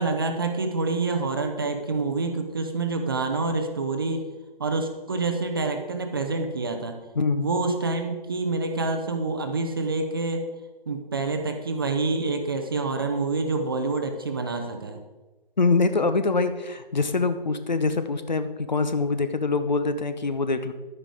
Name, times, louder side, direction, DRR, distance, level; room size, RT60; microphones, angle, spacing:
voice 1, 0.0-4.3 4.6-7.0 7.4-10.4 10.9-15.0, right 3 dB, 25° right, 6 dB, 0.8 m, -27 dB
voice 2, 7.1-7.5 15.6-20.7, left 3 dB, 50° left, 11 dB, 0.9 m, -24 dB
11.5 x 9.6 x 4.8 m, 1.2 s
figure-of-eight pair, 150°, 29 cm